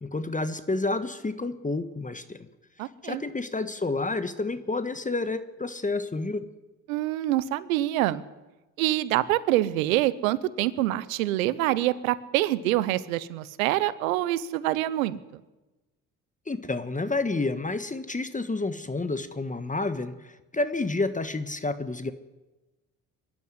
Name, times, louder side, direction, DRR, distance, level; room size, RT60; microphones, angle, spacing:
voice 1, 0.0-2.4 3.0-6.5 16.5-22.1, left 3 dB, 20° left, 11 dB, 1.5 m, -29 dB
voice 2, 2.8-3.2 6.9-8.2 8.8-15.2, right 15 dB, 85° right, 18 dB, 1.0 m, -26 dB
24.0 x 11.5 x 9.9 m, 1.1 s
hypercardioid pair, 55°, 40 cm